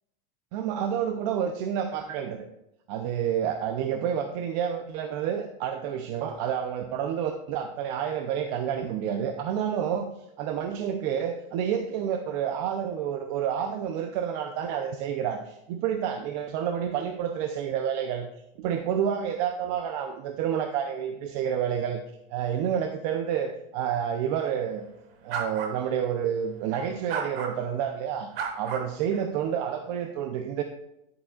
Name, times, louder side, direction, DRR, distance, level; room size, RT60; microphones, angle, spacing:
voice 1, 0.5-2.5 2.9-10.1 10.4-18.3 18.6-22.0 22.3-24.8 25.2-28.3 28.6-30.6, right 8 dB, 45° right, 6 dB, 0.7 m, -29 dB
sound 1, 25.3-25.7 26.7-27.5 28.3-29.3, right 6 dB, 80° right, 1.6 m, -33 dB
10.5 x 8.0 x 2.4 m, 0.83 s
supercardioid pair, 155°, 29 cm